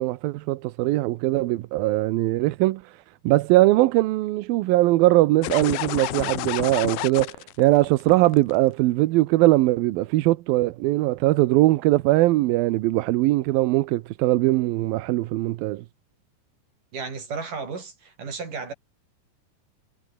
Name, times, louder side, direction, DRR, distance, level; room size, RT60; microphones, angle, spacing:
voice 1, 0.0-2.9 3.2-15.8, right 18 dB, 75° right, 2.4 m, -21 dB
sound 1, 5.4-8.5, left 18 dB, 80° left, 2.3 m, -30 dB
voice 2, 16.9-18.7, right 4 dB, 50° right, 7.2 m, -33 dB
omnidirectional pair, 4.6 m